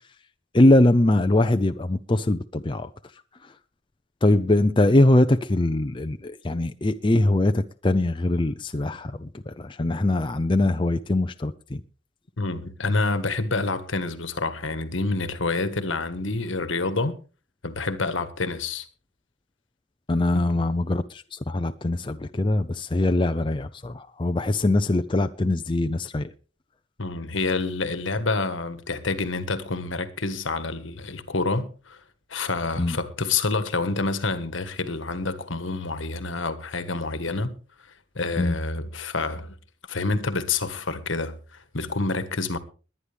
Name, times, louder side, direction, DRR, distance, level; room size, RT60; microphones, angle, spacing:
voice 1, 0.5-2.9 4.2-11.8 20.1-26.3 32.8-33.0 38.4-38.6, left 1 dB, 25° left, 0.5 m, -22 dB
voice 2, 12.4-17.2 17.6-18.8 20.3-20.6 27.0-32.0 32.3-37.5 38.1-39.6 39.9-42.6, left 3 dB, 70° left, 1.5 m, -28 dB
21.5 x 9.7 x 3.5 m
head